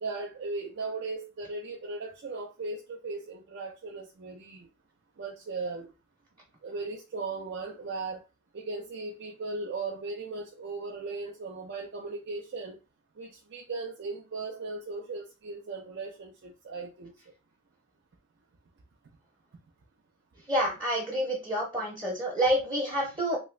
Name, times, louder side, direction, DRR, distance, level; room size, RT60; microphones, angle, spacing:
voice 1, 0.0-4.7 5.2-5.9 6.6-8.2 8.5-12.8 13.2-17.1, right 3 dB, 55° right, 0 dB, 0.5 m, -37 dB
voice 2, 20.5-23.4, equal, 20° right, -4 dB, 0.8 m, -28 dB
2.9 x 2.4 x 3.1 m, 0.29 s
head